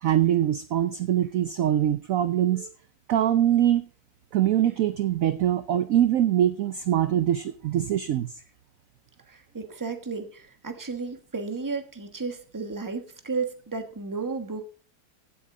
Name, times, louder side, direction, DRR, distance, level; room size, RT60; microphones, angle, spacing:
voice 1, 0.0-2.7 3.1-3.9 4.3-8.3, right 11 dB, 70° right, 12 dB, 0.8 m, -23 dB
voice 2, 9.3-14.6, right 4 dB, 10° right, 7 dB, 1.1 m, -33 dB
16.0 x 7.8 x 3.8 m, 0.39 s
omnidirectional pair, 2.1 m